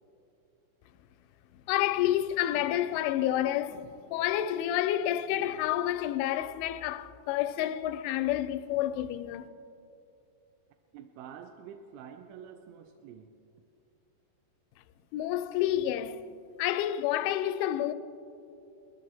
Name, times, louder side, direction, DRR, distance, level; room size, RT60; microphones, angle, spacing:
voice 1, 1.7-9.5 15.1-16.2 16.6-17.9, left 12 dB, 85° left, 2.9 m, -29 dB
voice 2, 10.9-13.3, right 8 dB, 85° right, 2.9 m, -47 dB
21.0 x 13.5 x 3.4 m
omnidirectional pair, 5.5 m